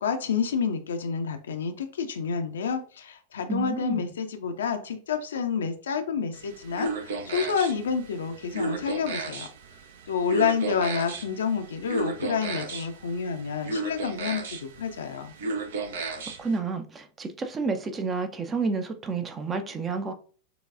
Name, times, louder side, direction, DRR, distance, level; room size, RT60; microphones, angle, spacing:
voice 1, 0.0-9.5 10.1-15.3, left 6 dB, 65° left, 0.6 m, -29 dB
voice 2, 3.5-4.1 16.4-20.1, right 4 dB, 20° right, 0.6 m, -30 dB
sound 1, 6.3-16.6, right 3 dB, 60° right, 0.7 m, -35 dB
6.7 x 2.3 x 2.5 m
figure-of-eight pair, 90°, 0 cm